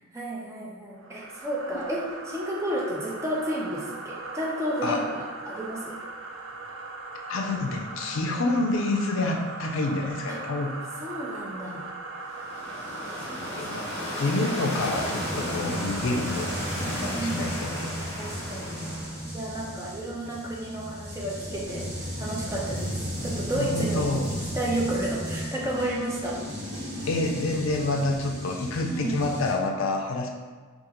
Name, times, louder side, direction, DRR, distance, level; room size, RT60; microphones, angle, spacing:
voice 1, 0.1-6.0 10.3-10.4 11.0-11.9 13.2-14.2 16.8-17.7 18.2-18.9 19.3-26.4 28.8-29.3, right 1 dB, 15° right, -4 dB, 0.5 m, -32 dB
sound 1, 1.0-18.0, right 3 dB, 75° right, 0.5 m, -39 dB
voice 2, 7.3-10.8 13.2-16.5 16.9-17.9 23.5-24.2 27.1-30.3, left 2 dB, 65° left, 2 dB, 0.4 m, -28 dB
sound 2, 12.2-19.3, equal, 15° left, 0.9 m, -35 dB
sound 3, 14.9-29.5, equal, 60° right, 1.2 m, -35 dB
2.9 x 2.4 x 3.7 m, 1.5 s
head